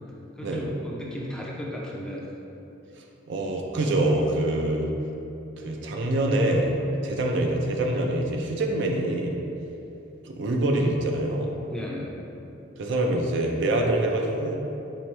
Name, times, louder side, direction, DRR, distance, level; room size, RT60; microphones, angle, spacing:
voice 1, 0.4-2.3 11.7-12.1, equal, 5° left, -3 dB, 0.4 m, -35 dB
voice 2, 3.3-4.9 5.6-6.7 7.0-9.3 10.2-11.5 12.8-14.6, right 1 dB, 65° right, 1 dB, 0.5 m, -25 dB
4.5 x 3.3 x 3.2 m, 2.9 s
head